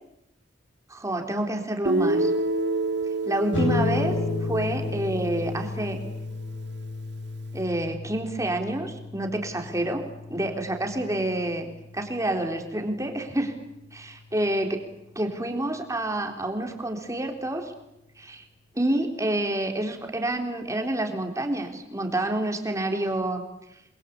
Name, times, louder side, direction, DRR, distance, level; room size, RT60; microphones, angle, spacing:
voice 1, 0.9-2.3 3.2-4.1 4.4-6.0 7.5-10.0 10.3-13.5 13.9-14.8 15.2-17.7 18.2-18.4 18.7-23.4, right 1 dB, 15° right, 4 dB, 3.8 m, -28 dB
Guitar, 1.8-5.8, right 2 dB, 65° right, 1.9 m, -28 dB
sound 1, 3.5-14.3, left 3 dB, 85° left, 5.9 m, -33 dB
29.5 x 22.5 x 8.5 m, 0.85 s
head